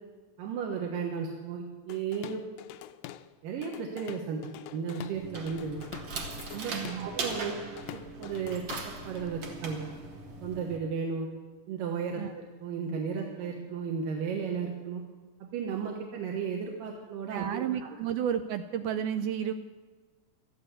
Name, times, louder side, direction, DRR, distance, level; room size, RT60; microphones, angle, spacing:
voice 1, 0.4-2.4 3.4-5.8 6.5-7.6 7.9-9.8 10.4-11.3 11.7-15.0 15.4-17.9, right 6 dB, 70° right, 0 dB, 2.8 m, -34 dB
Drum kit / Drum, 1.9-3.3 3.6-9.3, left 13 dB, 85° left, 2.3 m, -46 dB
sound 1, 5.1-10.8, right 3 dB, 50° right, 2.2 m, -40 dB
voice 2, 6.7-7.1 12.2-12.3 17.3-19.5, right 9 dB, 90° right, 9 dB, 1.7 m, -32 dB
13.0 x 11.5 x 8.1 m, 1.3 s
omnidirectional pair, 4.2 m